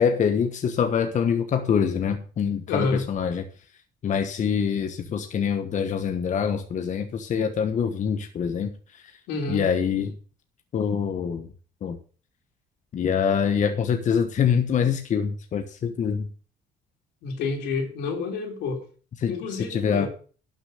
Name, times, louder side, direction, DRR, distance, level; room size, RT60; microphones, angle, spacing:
voice 1, 0.0-3.4 4.0-9.1 9.5-10.1 10.7-11.5 11.8-12.0 12.9-16.3 19.2-20.1, left 7 dB, 45° left, 7 dB, 1.3 m, -25 dB
voice 2, 2.7-3.0 9.3-9.7 17.2-18.8 19.3-20.1, left 4 dB, 85° left, 4 dB, 3.4 m, -28 dB
11.5 x 6.9 x 6.7 m, 0.39 s
cardioid pair, 110°, 17 cm